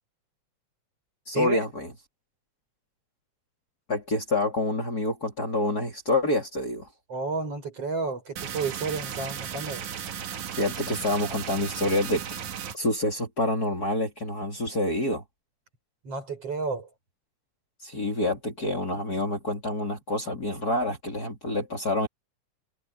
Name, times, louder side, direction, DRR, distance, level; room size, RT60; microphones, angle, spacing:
voice 1, 1.3-1.9 3.9-6.9 10.6-12.4 12.7-15.2 17.8-22.1, left 1 dB, 30° left, 3.8 m, -27 dB
voice 2, 7.1-9.8 16.0-16.9, right 4 dB, 50° right, 7.9 m, -31 dB
sound 1, 8.4-12.8, right 8 dB, 75° right, 3.0 m, -35 dB
omnidirectional pair, 3.5 m